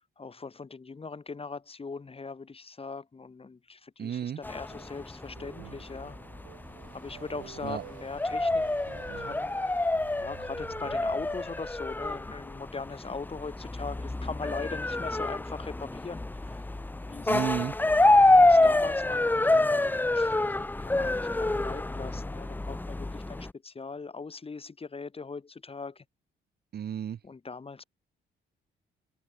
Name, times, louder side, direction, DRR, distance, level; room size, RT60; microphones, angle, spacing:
voice 1, 0.0-6.2 6.9-8.6 9.2-9.8 10.2-16.7 17.0-17.5 18.4-26.0 27.2-27.8, left 4 dB, 30° left, 2.9 m, -40 dB
voice 2, 4.0-4.4 7.6-7.8 17.3-17.7 26.7-27.2, right 9 dB, 55° right, 1.2 m, -32 dB
sound 1, 4.4-23.5, left 2 dB, 10° left, 0.6 m, -27 dB
sound 2, 4.7-11.7, right 16 dB, 90° right, 1.4 m, -49 dB
cardioid pair, 90°, 20 cm